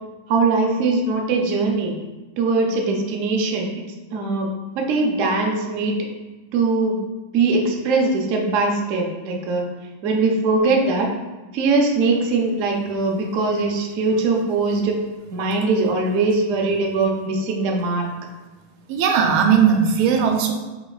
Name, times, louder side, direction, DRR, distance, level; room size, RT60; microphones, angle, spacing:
voice 1, 0.3-1.9 2.4-3.7 4.1-4.5 4.7-6.0 6.5-7.0 7.3-9.6 10.0-11.1 11.5-15.0 15.3-18.1, right 3 dB, 70° right, 0 dB, 0.7 m, -21 dB
voice 2, 18.9-20.5, right 7 dB, 90° right, 4 dB, 1.4 m, -17 dB
5.5 x 3.9 x 2.3 m, 1.2 s
omnidirectional pair, 2.2 m